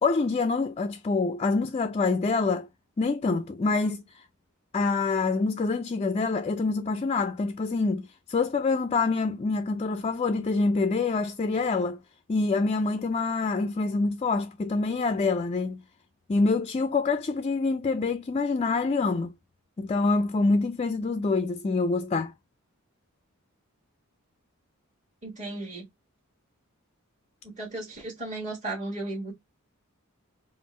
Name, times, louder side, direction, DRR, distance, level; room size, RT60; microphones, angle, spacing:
voice 1, 0.0-2.7 3.0-4.2 4.7-12.0 12.3-15.8 16.3-19.3 19.8-22.3, left 3 dB, 25° left, 0.3 m, -26 dB
voice 2, 25.2-25.8 27.4-29.3, right 2 dB, 30° right, 1.3 m, -35 dB
5.2 x 2.4 x 3.1 m
head